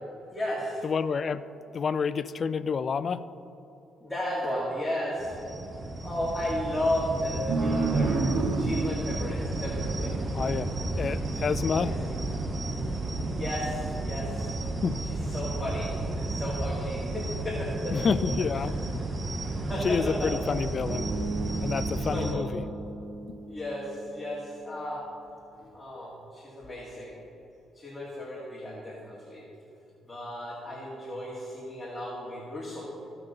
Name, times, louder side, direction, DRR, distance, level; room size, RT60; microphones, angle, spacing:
voice 1, 0.3-0.8 4.0-5.4 6.0-8.3 8.6-10.2 11.0-11.3 11.7-12.0 13.4-14.6 15.0-18.1 18.6-18.8 19.4-20.6 22.1-22.4 23.5-25.1 25.6-27.2 27.7-29.4 30.1-32.9, left 1 dB, 15° left, -7 dB, 2.1 m, -34 dB
voice 2, 0.8-1.4 1.7-3.2 10.3-10.7 11.0-11.9 14.8-15.0 17.9-18.8 19.8-21.1 21.6-22.6 23.3-23.4, left 5 dB, 45° left, 13 dB, 0.3 m, -28 dB
sound 1, 5.2-22.3, right 2 dB, 35° right, 0.8 m, -32 dB
sound 2, 7.5-10.6, right 3 dB, 75° right, 0.9 m, -29 dB
Bass guitar, 20.9-25.0, right 2 dB, 55° right, 1.7 m, -38 dB
15.5 x 5.9 x 3.9 m, 3.0 s
cardioid pair, 90°, 0 cm